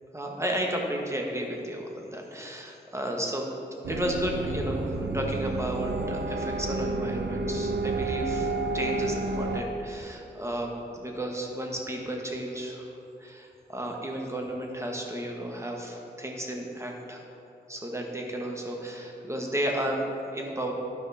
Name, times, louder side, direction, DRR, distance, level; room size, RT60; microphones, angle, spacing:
voice 1, 0.1-3.5 3.9-10.7 11.0-12.9 13.2-17.2 17.7-20.7, right 1 dB, 15° right, 0 dB, 1.4 m, -33 dB
sound 1, 3.8-9.6, right 2 dB, 80° right, 0.6 m, -30 dB
12.0 x 5.2 x 4.2 m, 2.9 s
cardioid pair, 50°, 18 cm